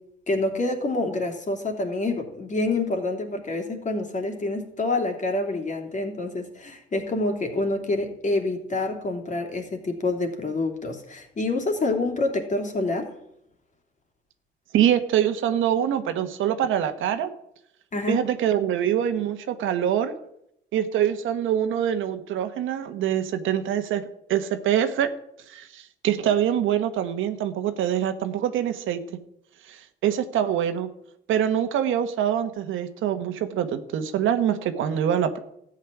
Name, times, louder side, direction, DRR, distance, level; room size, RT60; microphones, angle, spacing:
voice 1, 0.3-13.1 17.9-18.3, left 2 dB, 40° left, 3 dB, 3.1 m, -27 dB
voice 2, 14.7-17.3 18.1-20.1 20.7-24.0 24.3-25.1 25.5-29.0 29.7-30.9 31.3-35.4, right 10 dB, 85° right, 9 dB, 1.4 m, -24 dB
13.5 x 6.6 x 9.8 m, 0.76 s
cardioid pair, 90°, 20 cm